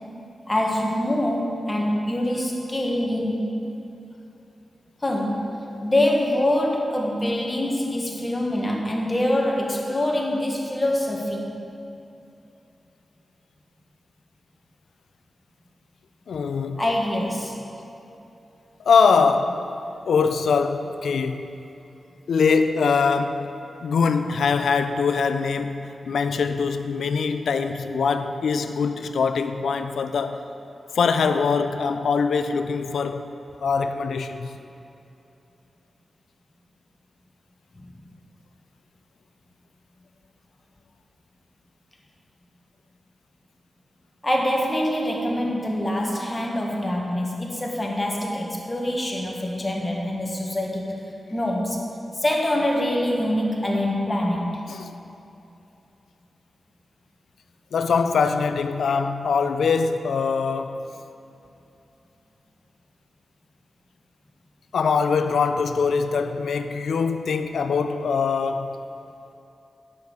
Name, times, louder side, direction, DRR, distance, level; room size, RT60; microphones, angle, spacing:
voice 1, 0.5-3.5 5.0-5.5 5.8-11.5 16.8-17.6 37.7-37.9 44.2-50.9 51.3-51.8 52.1-54.6, left 1 dB, 25° left, 1.6 m, -24 dB
voice 2, 16.3-16.8 18.8-19.7 20.1-21.5 22.3-23.5 23.8-30.4 30.9-33.3 33.6-34.6 54.7-54.9 57.7-60.9 64.7-68.8, left 5 dB, 85° left, 0.4 m, -23 dB
9.4 x 6.4 x 5.3 m
cardioid pair, 55°, 0 cm